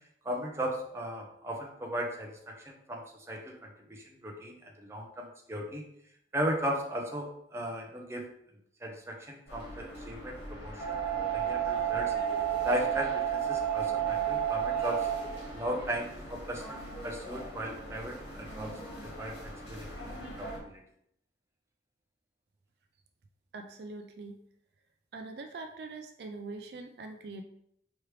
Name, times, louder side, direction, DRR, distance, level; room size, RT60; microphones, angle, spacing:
voice 1, 0.2-5.8 6.3-8.2 8.8-12.1 12.6-15.1 15.5-18.7 19.0-19.9 20.4-20.8, equal, 15° right, 0 dB, 0.6 m, -36 dB
sound 1, 9.5-20.6, right 8 dB, 70° left, 1.6 m, -34 dB
voice 2, 23.5-24.4 25.1-27.4, right 3 dB, 60° right, 5 dB, 0.4 m, -43 dB
4.8 x 3.1 x 3.2 m, 0.73 s
head